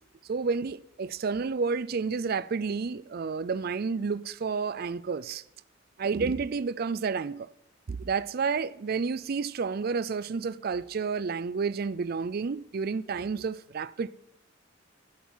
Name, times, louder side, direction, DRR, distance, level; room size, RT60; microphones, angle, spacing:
voice 1, 0.2-5.4 6.0-7.5 7.9-14.1, right 5 dB, 50° right, 0.4 m, -30 dB
12.0 x 11.5 x 5.6 m
head